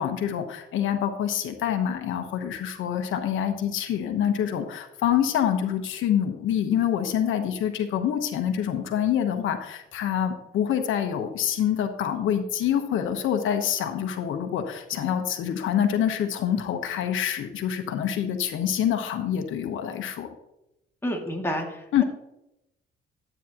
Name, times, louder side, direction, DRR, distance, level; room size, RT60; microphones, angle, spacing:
voice 1, 0.0-20.3 21.9-22.0, left 9 dB, 80° left, 6 dB, 1.1 m, -26 dB
voice 2, 21.0-22.0, equal, 10° left, 0 dB, 2.3 m, -30 dB
12.0 x 9.0 x 2.9 m, 0.87 s
cardioid pair, 90°, 20 cm